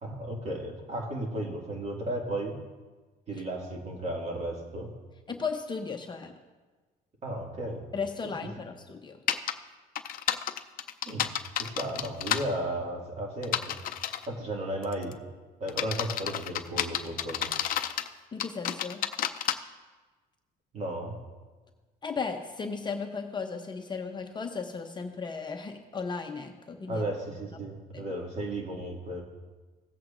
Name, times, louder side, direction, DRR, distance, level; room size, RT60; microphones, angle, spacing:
voice 1, 0.0-2.6 3.3-4.9 7.2-7.8 11.1-11.2 11.5-13.8 14.3-15.1 15.6-17.5 20.7-21.2 26.9-29.2, right 1 dB, 40° right, 0 dB, 2.1 m, -34 dB
voice 2, 5.3-6.3 7.9-9.2 18.3-19.0 22.0-27.0 27.9-28.1, left 5 dB, 25° left, 4 dB, 0.7 m, -35 dB
sound 1, 9.3-9.5 9.9-12.4 13.4-14.3 14.8-15.1 15.7-18.1 18.4-19.5, left 11 dB, 60° left, 0.5 m, -30 dB
17.0 x 7.8 x 2.5 m, 1.3 s
cardioid pair, 110°, 17 cm